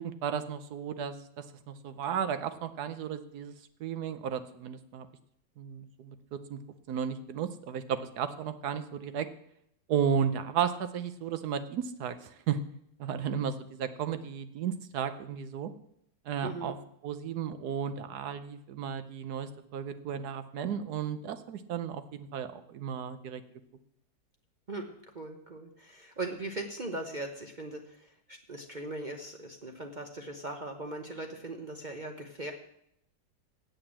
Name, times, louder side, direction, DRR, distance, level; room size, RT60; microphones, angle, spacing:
voice 1, 0.0-3.5 3.8-5.1 5.6-6.6 6.9-9.3 9.9-12.6 13.0-15.7 16.3-16.8 17.0-23.4, right 8 dB, 65° right, 11 dB, 1.1 m, -34 dB
voice 2, 16.4-16.8 24.7-32.5, right 2 dB, 45° right, 3 dB, 0.6 m, -39 dB
8.7 x 7.8 x 7.4 m, 0.73 s
omnidirectional pair, 2.0 m